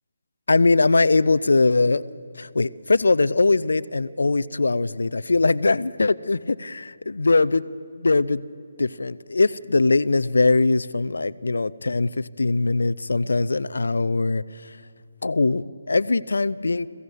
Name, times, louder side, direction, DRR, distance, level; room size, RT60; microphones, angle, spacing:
voice 1, 0.5-2.0 2.4-7.6 8.0-8.4 8.8-14.4 15.2-16.9, left 3 dB, 70° left, 17 dB, 0.5 m, -21 dB
21.0 x 16.0 x 8.2 m, 2.4 s
figure-of-eight pair, 145°, 0 cm